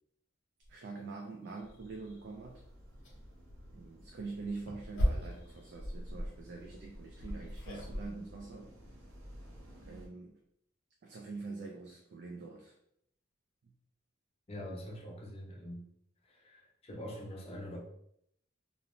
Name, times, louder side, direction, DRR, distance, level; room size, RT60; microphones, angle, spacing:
sound 1, 0.6-0.7 1.2-1.3 1.7-2.2 3.0-3.1 3.5-3.7 4.3-8.1, equal, 70° left, 0.7 m, -36 dB
voice 1, 0.7-2.6 3.7-8.8 9.9-10.4 11.0-12.7 13.6-13.7, right 3 dB, 55° right, 1 dB, 0.3 m, -45 dB
sound 2, 1.6-10.1, equal, 90° right, 0.7 m, -54 dB
voice 2, 14.5-15.8 16.2-17.8, left 1 dB, 30° left, -1 dB, 0.5 m, -44 dB
2.5 x 2.0 x 2.9 m, 0.73 s
head